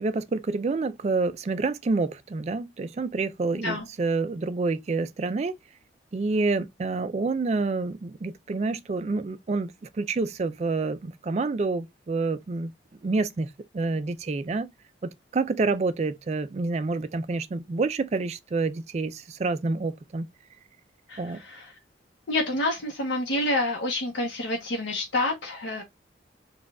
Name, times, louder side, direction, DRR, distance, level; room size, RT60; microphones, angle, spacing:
voice 1, 0.0-5.5 6.1-12.7 13.0-14.7 15.0-20.3 21.2-21.4, right 3 dB, 35° right, 0.3 m, -28 dB
voice 2, 21.1-21.7 22.3-25.8, left 2 dB, 85° left, 0.8 m, -28 dB
4.9 x 2.3 x 2.2 m
head